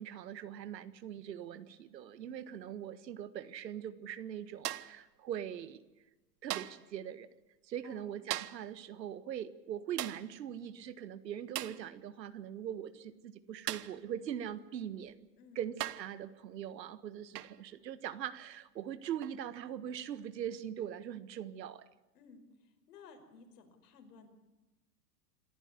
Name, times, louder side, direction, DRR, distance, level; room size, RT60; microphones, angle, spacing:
voice 1, 0.0-5.8 6.4-7.3 7.6-15.3 15.6-21.9, right 9 dB, 85° right, 14 dB, 1.7 m, -42 dB
sound 1, 4.6-5.0 6.5-6.9 8.3-8.7 10.0-10.3 11.5-11.9 13.7-14.0 15.1-15.2 15.8-16.2 17.3-17.6 19.2-19.4, right 14 dB, 65° right, 1.2 m, -39 dB
voice 2, 22.1-24.3, left 5 dB, 65° left, 5 dB, 5.3 m, -57 dB
26.5 x 14.5 x 9.9 m, 1.1 s
hypercardioid pair, 135°, 50 cm